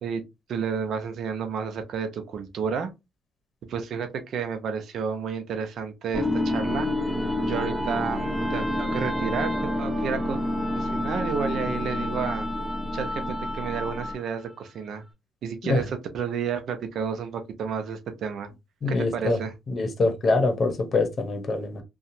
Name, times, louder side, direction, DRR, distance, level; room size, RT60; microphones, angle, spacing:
voice 1, 0.5-2.9 3.7-6.9 7.4-10.4 10.8-12.5 12.9-15.0 15.4-18.5 18.9-19.5, right 6 dB, 70° right, 0.6 m, -31 dB
sound 1, 6.1-14.3, left 1 dB, 10° right, 1.8 m, -28 dB
voice 2, 18.8-19.4 19.7-21.8, left 3 dB, 45° left, 0.9 m, -24 dB
2.8 x 2.3 x 2.6 m
cardioid pair, 90°, 0 cm